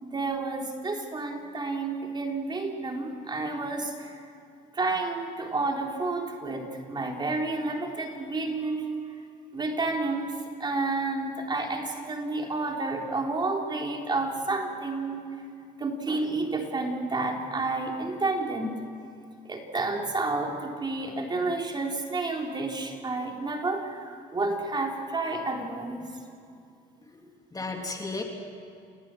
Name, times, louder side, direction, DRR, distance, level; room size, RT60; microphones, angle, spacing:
voice 1, 0.0-4.2 4.7-8.9 9.5-15.2 15.8-18.7 19.5-26.2, right 3 dB, 25° right, 1 dB, 3.8 m, -30 dB
voice 2, 27.0-28.2, left 3 dB, 20° left, 2 dB, 2.9 m, -35 dB
30.0 x 18.5 x 7.7 m, 2.5 s
cardioid pair, 110°, 17 cm